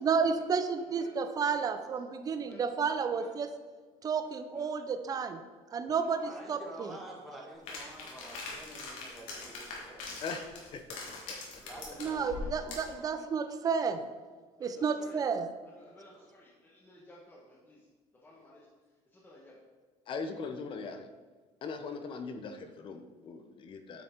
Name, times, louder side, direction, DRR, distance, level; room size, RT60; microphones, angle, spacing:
voice 1, 0.0-3.5 4.0-5.4 5.7-7.0 12.0-14.0 14.6-15.5, right 6 dB, 30° right, 9 dB, 0.6 m, -31 dB
voice 2, 6.2-10.4 11.6-13.2 16.1-16.2, right 1 dB, ahead, -4 dB, 2.0 m, -49 dB
sound 1, 7.7-12.9, left 3 dB, 90° left, 2.5 m, -42 dB
voice 3, 10.2-11.4 20.1-21.1 21.6-24.0, left 4 dB, 40° left, 8 dB, 0.9 m, -40 dB
voice 4, 15.9-16.5 16.8-17.4 17.7-17.8 18.2-18.6 19.2-19.5, left 1 dB, 15° left, -5 dB, 1.4 m, -54 dB
9.1 x 6.2 x 4.5 m, 1.4 s
cardioid pair, 150°, 13 cm